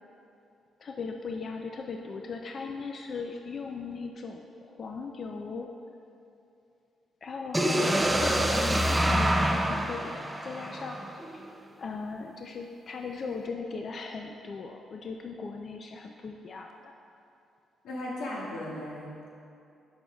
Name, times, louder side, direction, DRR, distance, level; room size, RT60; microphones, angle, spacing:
voice 1, 0.8-5.7 7.2-11.0 11.3-11.4 11.8-16.9, left 4 dB, 45° left, 2 dB, 0.4 m, -38 dB
sound 1, 7.5-11.4, right 1 dB, 10° right, 0.5 m, -26 dB
voice 2, 17.8-19.4, left 1 dB, 90° left, -5 dB, 1.7 m, -37 dB
14.0 x 5.7 x 2.3 m, 2.6 s
cardioid pair, 115°, 0 cm